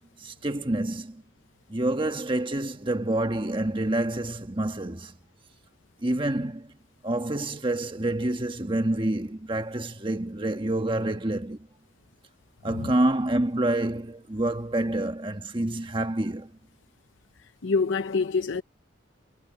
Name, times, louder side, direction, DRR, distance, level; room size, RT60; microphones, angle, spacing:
voice 1, 0.2-1.2 1.7-5.1 6.0-6.7 7.0-11.6 12.6-16.5, right 1 dB, 25° right, 1.3 m, -27 dB
voice 2, 17.4-18.6, left 4 dB, 80° left, 0.7 m, -26 dB
head